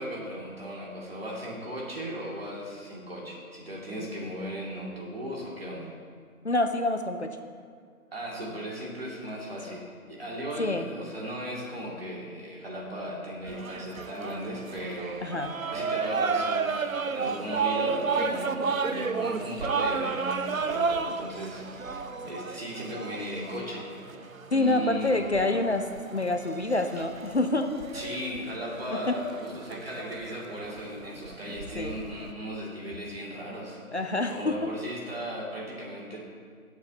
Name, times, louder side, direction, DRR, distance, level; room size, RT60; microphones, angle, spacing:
voice 1, 0.0-5.9 8.1-23.9 24.5-25.2 27.9-36.2, equal, 40° right, -4 dB, 2.6 m, -37 dB
voice 2, 6.4-7.4 10.6-10.8 15.2-15.5 24.5-27.7 29.1-29.2 31.8-32.0 33.9-34.7, left 2 dB, 50° left, 6 dB, 0.7 m, -27 dB
sound 1, 13.5-32.3, right 5 dB, 65° right, 0.7 m, -33 dB
17.0 x 8.4 x 2.9 m, 2.1 s
figure-of-eight pair, 165°, 43 cm